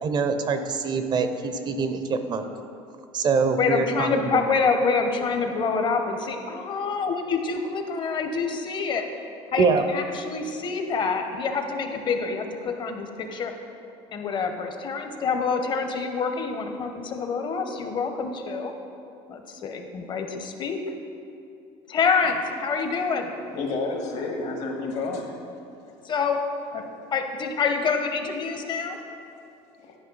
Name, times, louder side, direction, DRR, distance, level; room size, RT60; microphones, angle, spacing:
voice 1, 0.0-2.5 3.1-4.3 9.6-9.8, right 5 dB, 35° right, 8 dB, 0.6 m, -24 dB
voice 2, 3.6-9.0 9.5-13.5 14.1-18.7 19.3-20.8 21.9-23.3 26.0-26.4 27.1-29.0, left 5 dB, 35° left, 5 dB, 0.9 m, -26 dB
voice 3, 23.5-25.4 26.7-26.8 29.8-30.0, left 3 dB, 60° left, 2 dB, 1.4 m, -30 dB
11.0 x 5.3 x 3.9 m, 2.7 s
supercardioid pair, 115°, 13 cm